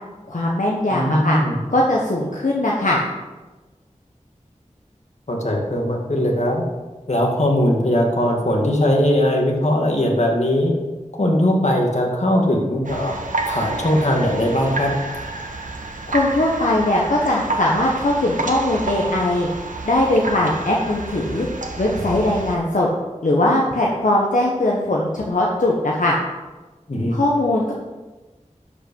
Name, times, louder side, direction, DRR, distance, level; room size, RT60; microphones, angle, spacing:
voice 1, 0.3-1.4 1.7-3.0 16.1-19.5 19.8-21.5 21.8-22.9 23.2-26.2 27.1-27.7, left 1 dB, 80° left, -3 dB, 1.3 m, -20 dB
voice 2, 0.9-1.6 5.3-6.6 7.1-10.7 11.2-13.2 13.5-14.9 26.9-27.2, left 1 dB, 60° left, 0 dB, 2.1 m, -19 dB
sound 1, 12.8-22.5, right 3 dB, 90° right, 1.1 m, -29 dB
12.0 x 5.5 x 5.5 m, 1.2 s
wide cardioid pair, 55°, 13 cm